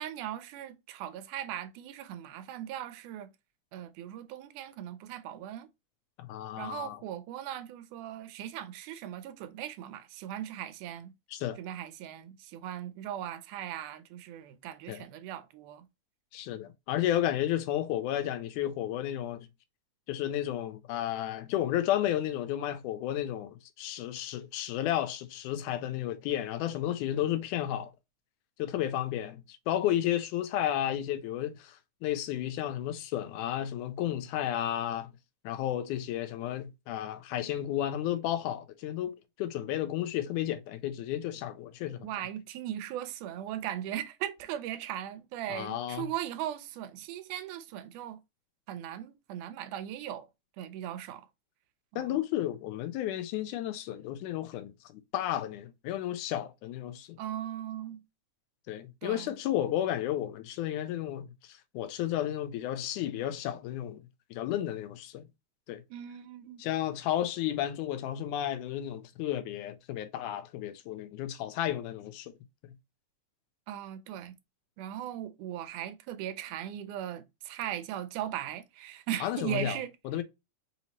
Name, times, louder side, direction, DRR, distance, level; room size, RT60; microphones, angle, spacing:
voice 1, 0.0-3.3 3.7-5.7 6.6-11.1 11.6-15.9 42.0-48.2 48.7-50.3 50.6-51.3 51.9-52.1 57.2-58.0 59.0-59.3 65.9-66.6 73.7-74.3 74.8-79.9, right 11 dB, 90° right, 2.1 m, -38 dB
voice 2, 6.2-7.0 11.3-11.6 14.9-15.0 16.3-19.5 20.1-27.9 28.6-35.1 35.4-42.1 45.5-46.1 52.0-57.2 58.7-64.0 64.3-65.3 65.7-65.8 66.6-72.3 79.2-79.8 80.1-80.2, left 12 dB, 85° left, 2.1 m, -32 dB
5.4 x 2.8 x 2.9 m
omnidirectional pair, 3.5 m